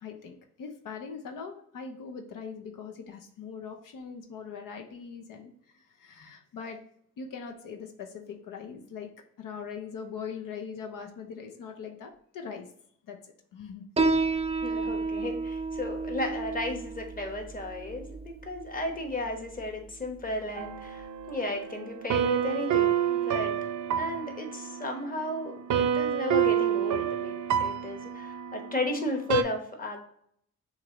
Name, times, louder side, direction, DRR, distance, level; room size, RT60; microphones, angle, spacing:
voice 1, 0.0-6.8 7.2-9.1 9.4-12.7 13.1-13.2 13.5-13.8, left 6 dB, 85° left, 4 dB, 0.7 m, -41 dB
Piano, 14.0-21.0, right 3 dB, 20° right, 0.4 m, -32 dB
voice 2, 14.6-23.5 24.0-30.0, left 2 dB, 25° left, 3 dB, 1.2 m, -34 dB
sound 1, 20.6-29.4, right 9 dB, 65° right, 0.6 m, -29 dB
6.4 x 2.6 x 2.9 m, 0.67 s
cardioid pair, 90°, 32 cm